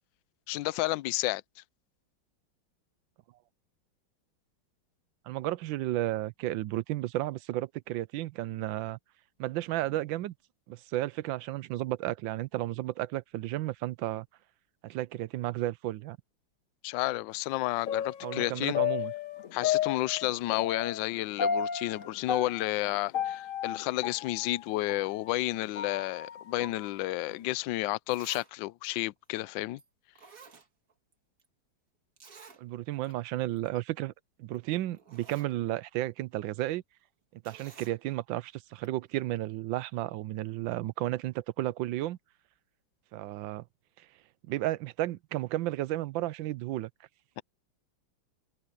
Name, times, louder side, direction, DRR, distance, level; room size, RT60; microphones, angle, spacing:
voice 1, 0.5-1.4 16.8-18.8 19.5-29.8, left 18 dB, 75° left, 1.2 m, -31 dB
voice 2, 5.3-9.0 9.4-10.3 10.7-14.3 14.8-16.2 18.2-19.1 32.6-34.1 34.4-36.8 37.3-42.2 43.1-43.6 44.5-46.9, right 15 dB, 75° right, 1.3 m, -33 dB
sound 1, 17.9-25.1 25.5-26.9 27.3-27.4, left 8 dB, 50° left, 1.1 m, -33 dB
Zipper (clothing), 27.6-27.7 28.1-28.5 28.8-28.9 29.8-29.9 30.2-31.1 31.4-31.5 32.2-32.6 33.0-33.1 33.5-33.7 34.6-34.7 35.0-35.5 37.4-38.0 38.8-38.9, right 5 dB, 45° right, 2.2 m, -52 dB
omnidirectional pair, 2.2 m